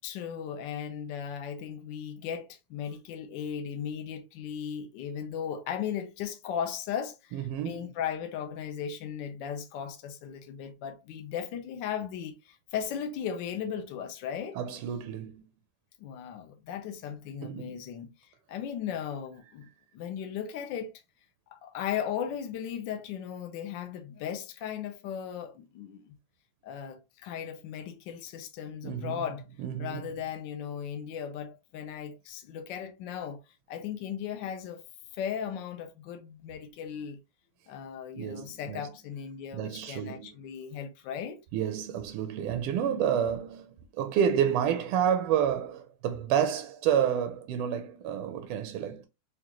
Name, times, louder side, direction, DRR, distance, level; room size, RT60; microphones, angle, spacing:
voice 1, 0.0-14.6 16.0-19.7 19.9-20.9 21.5-26.1 26.6-29.5 29.8-33.4 33.7-34.8 35.1-37.2 37.7-41.4, left 8 dB, 70° left, 1.1 m, -37 dB
voice 2, 7.3-7.9 14.5-15.4 17.4-17.8 28.8-29.2 29.6-30.1 38.1-38.8 39.5-40.3 41.5-49.1, right 9 dB, 90° right, 1.5 m, -29 dB
5.0 x 2.4 x 2.9 m
omnidirectional pair, 2.4 m